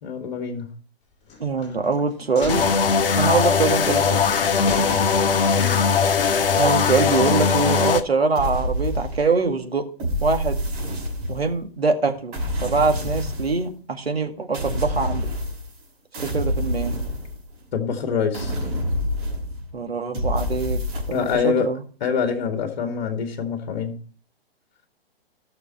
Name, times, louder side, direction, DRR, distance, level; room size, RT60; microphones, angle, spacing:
voice 1, 0.0-0.7 5.6-5.8 17.7-18.6 21.1-21.7 22.0-24.0, left 6 dB, 45° left, 5 dB, 2.0 m, -25 dB
sound 1, 1.3-2.0 2.3-3.6 4.0-4.1 4.4-4.5 4.7-5.6 5.9-6.0, left 5 dB, 20° left, 4.6 m, -34 dB
voice 2, 1.4-2.7 3.2-4.2 6.6-9.9 10.2-10.6 11.3-15.3 16.2-17.0 19.7-20.8 21.1-21.8, right 4 dB, 75° right, 5 dB, 2.1 m, -23 dB
sound 2, 2.5-8.0, left 6 dB, 60° left, 1.1 m, -20 dB
sound 3, 8.3-9.5 10.0-11.6 12.3-13.6 14.5-15.8 16.1-17.7 18.3-19.7 20.1-21.4, left 1 dB, 30° right, 5.7 m, -27 dB
15.5 x 6.6 x 4.4 m, 0.42 s
figure-of-eight pair, 125°, 31 cm